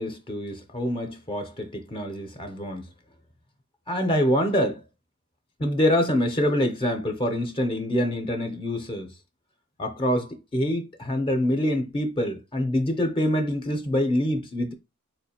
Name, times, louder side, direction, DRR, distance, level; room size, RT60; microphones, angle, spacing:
voice 1, 0.0-2.9 3.9-4.8 5.6-9.1 9.8-14.7, equal, 25° left, 0.5 m, -25 dB
4.4 x 2.4 x 2.8 m
head